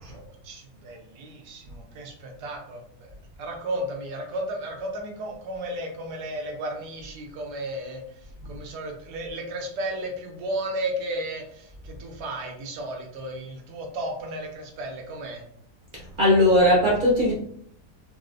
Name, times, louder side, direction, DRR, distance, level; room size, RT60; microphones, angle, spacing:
voice 1, 0.0-3.1 3.4-15.4, right 1 dB, 90° right, 1 dB, 1.3 m, -34 dB
voice 2, 15.9-17.3, left 1 dB, 45° right, -4 dB, 0.7 m, -19 dB
4.1 x 2.0 x 2.5 m, 0.64 s
omnidirectional pair, 1.7 m